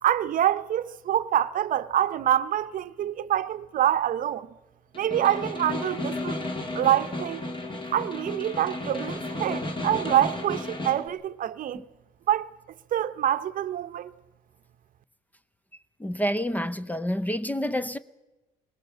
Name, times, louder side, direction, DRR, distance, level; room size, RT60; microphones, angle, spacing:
voice 1, 0.0-4.5 4.9-6.4 6.7-7.4 7.9-11.8 12.3-12.5 12.9-14.1, right 11 dB, 55° right, 0.8 m, -26 dB
Snare drum, 4.9-11.1, left 2 dB, 30° left, 2.2 m, -33 dB
voice 2, 16.0-18.0, equal, 10° left, 0.6 m, -28 dB
20.5 x 18.5 x 7.5 m
cardioid pair, 110°, 17 cm